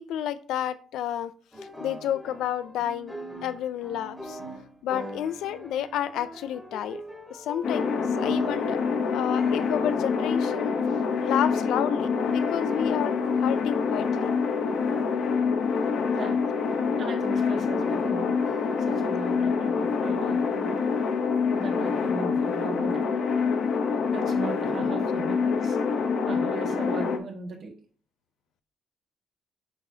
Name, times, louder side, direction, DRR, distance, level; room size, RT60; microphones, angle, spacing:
voice 1, 0.0-1.3 1.8-3.2 3.4-4.4 4.8-7.0 7.3-8.8 9.1-14.3, left 10 dB, 85° left, 14 dB, 0.4 m, -31 dB
sound 1, 1.5-7.9 8.2-8.8 9.2-10.4 11.0-11.5 12.2-12.5 13.2-14.3 15.0-15.6 15.9-16.1 16.4-16.5 17.6-19.1, right 1 dB, 5° left, 1.6 m, -42 dB
sound 2, 7.6-27.2, left 5 dB, 65° left, 0.8 m, -26 dB
voice 2, 17.0-18.3 18.8-20.8 21.5-23.2 24.1-25.8 26.3-27.7, right 3 dB, 65° right, 1 dB, 1.8 m, -37 dB
7.6 x 4.8 x 2.8 m, 0.43 s
cardioid pair, 90°, 0 cm